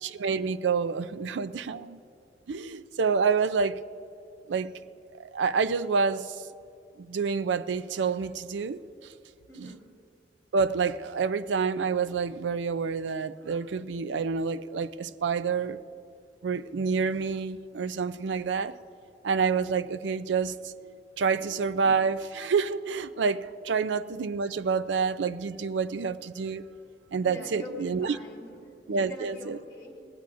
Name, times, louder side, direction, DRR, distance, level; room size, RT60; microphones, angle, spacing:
voice 1, 0.0-2.0 2.5-3.8 4.5-4.7 5.2-6.4 7.0-9.1 9.6-9.7 10.5-15.8 16.4-18.7 19.2-26.6 27.1-28.2 28.9-29.6, right 5 dB, 85° right, 14 dB, 0.4 m, -28 dB
voice 2, 9.5-9.9 27.2-30.0, left 2 dB, 20° left, -1 dB, 2.0 m, -44 dB
19.5 x 17.0 x 2.6 m, 2.6 s
head